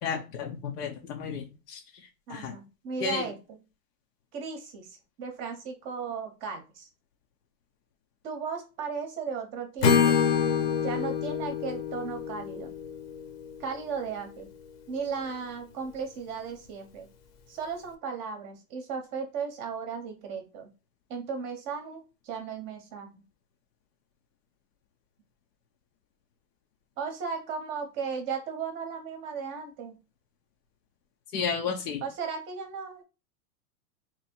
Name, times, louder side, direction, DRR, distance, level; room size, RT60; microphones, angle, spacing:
voice 1, 0.0-1.8 2.3-2.5 3.0-3.2 31.3-32.0, left 6 dB, 90° left, 1 dB, 0.9 m, -32 dB
voice 2, 2.3-3.6 4.3-6.9 8.2-10.2 10.8-12.7 13.6-14.5 14.9-17.1 17.5-20.7 21.1-23.2 27.0-30.0 32.0-33.0, right 5 dB, 25° right, 5 dB, 0.7 m, -36 dB
Acoustic guitar / Strum, 9.8-13.8, left 7 dB, 40° left, 0.8 m, -26 dB
3.0 x 2.7 x 4.2 m, 0.30 s
supercardioid pair, 150°, 46 cm